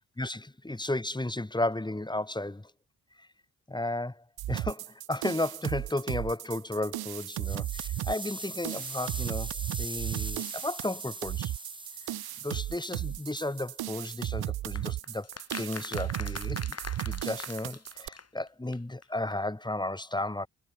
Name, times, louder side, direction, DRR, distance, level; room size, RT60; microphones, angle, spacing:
voice 1, 0.2-2.7 3.2-3.3 3.7-9.5 9.8-11.5 12.4-15.3 15.6-16.8 17.0-20.5, left 1 dB, 10° left, 2.8 m, -34 dB
sound 1, 4.4-18.1, right 14 dB, 65° right, 0.7 m, -35 dB
sound 2, 6.9-14.0, right 1 dB, 10° right, 6.5 m, -42 dB
sound 3, 14.8-18.5 18.7-18.8 19.0-19.1 19.3-19.4, left 5 dB, 40° left, 7.2 m, -42 dB
cardioid pair, 80°, 40 cm